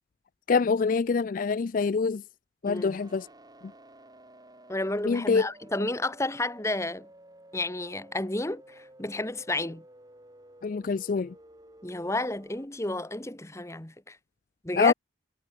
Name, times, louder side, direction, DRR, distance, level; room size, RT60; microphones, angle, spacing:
voice 1, 0.5-2.2 2.6-3.3 5.0-5.4 10.6-11.3 14.8-14.9, left 5 dB, 45° left, 0.4 m, -25 dB
voice 2, 2.6-3.0 4.7-7.1 7.5-9.8 11.8-14.2 14.6-14.9, left 2 dB, 15° left, 1.1 m, -31 dB
sound 1, 2.7-12.7, right 1 dB, 20° right, 4.7 m, -53 dB
head